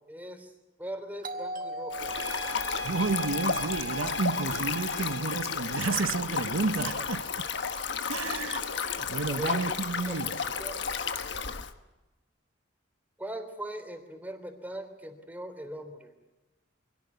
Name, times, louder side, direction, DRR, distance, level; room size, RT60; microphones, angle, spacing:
voice 1, 0.1-0.5 0.8-2.2 6.8-7.1 9.3-9.8 10.1-10.8 13.2-16.1, right 1 dB, 10° right, 3.2 m, -40 dB
Doorbell, 1.2-5.8, right 1 dB, 45° right, 1.8 m, -41 dB
Stream, 1.9-11.7, left 6 dB, 60° left, 1.3 m, -33 dB
sound 1, 2.0-7.3, equal, 80° left, 5.4 m, -40 dB
voice 2, 2.8-7.2 8.1-10.4, right 3 dB, 90° right, 0.8 m, -31 dB
25.5 x 17.5 x 9.4 m
head